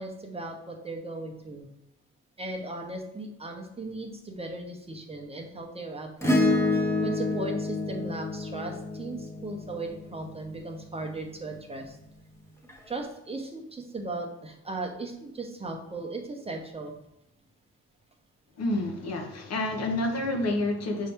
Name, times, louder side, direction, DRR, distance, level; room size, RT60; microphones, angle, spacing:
voice 1, 0.0-1.6 2.4-6.4 6.7-12.0 12.9-16.9, right 2 dB, 20° right, 2 dB, 0.7 m, -37 dB
Acoustic guitar / Strum, 6.2-10.8 12.7-12.8, left 2 dB, 10° left, 0.9 m, -28 dB
voice 2, 18.6-21.1, left 1 dB, 60° left, 3 dB, 0.9 m, -29 dB
5.4 x 2.8 x 3.4 m, 0.83 s
cardioid pair, 90°, 30 cm